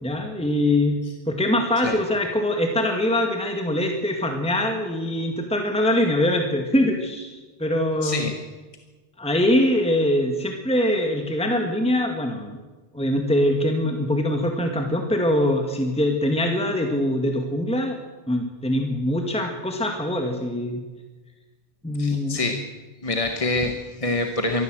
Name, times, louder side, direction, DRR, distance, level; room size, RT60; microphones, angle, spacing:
voice 1, 0.0-1.0 1.3-8.2 9.2-12.5 12.9-18.0 18.3-20.8 21.8-22.4, left 1 dB, 5° left, 3 dB, 1.9 m, -23 dB
voice 2, 8.0-8.4 22.0-22.6 23.0-24.6, left 2 dB, 30° left, 5 dB, 1.3 m, -26 dB
22.5 x 15.0 x 7.7 m, 1.3 s
omnidirectional pair, 1.2 m